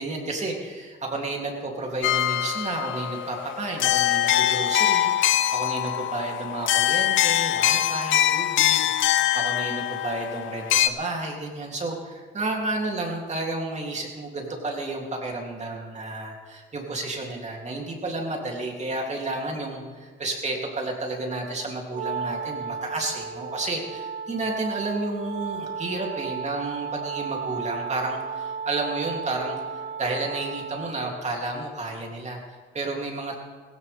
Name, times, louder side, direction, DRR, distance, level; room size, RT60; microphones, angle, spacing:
voice 1, 0.0-5.1 5.5-33.4, right 2 dB, 35° right, 0 dB, 3.4 m, -31 dB
sound 1, 2.0-10.9, left 12 dB, 80° left, 0.6 m, -23 dB
Wind instrument woodwind instrument, 21.9-31.1, right 6 dB, 65° right, 1.6 m, -34 dB
16.5 x 16.5 x 3.7 m, 1.5 s
cardioid pair, 90°, 20 cm